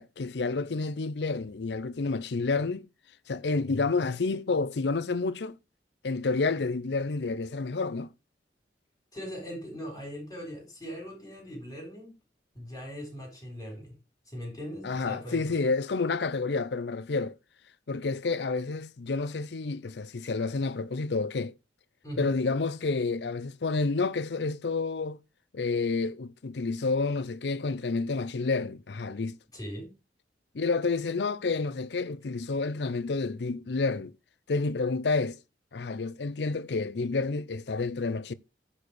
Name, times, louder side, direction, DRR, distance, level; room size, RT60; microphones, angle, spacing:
voice 1, 0.0-2.9 3.3-5.6 6.0-8.1 14.8-17.4 17.9-21.5 22.2-25.2 25.5-29.4 30.5-34.1 34.5-35.4 35.7-38.3, left 3 dB, 70° left, 0.6 m, -29 dB
voice 2, 9.1-12.2 12.5-14.0 14.3-15.5 22.0-22.4 29.5-29.9, equal, 20° left, 4.5 m, -40 dB
9.8 x 4.3 x 6.2 m
head